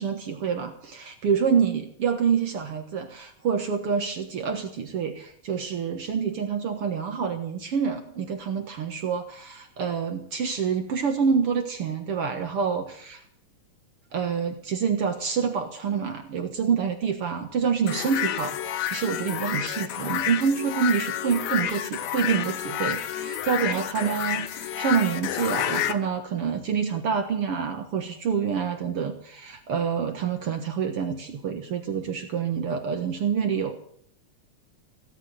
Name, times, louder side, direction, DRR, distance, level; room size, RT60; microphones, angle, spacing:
voice 1, 0.0-13.2 14.1-33.8, right 6 dB, 55° right, 5 dB, 2.1 m, -27 dB
sound 1, 17.9-25.9, left 11 dB, 70° left, 2.1 m, -29 dB
17.5 x 8.4 x 9.2 m, 0.63 s
omnidirectional pair, 3.4 m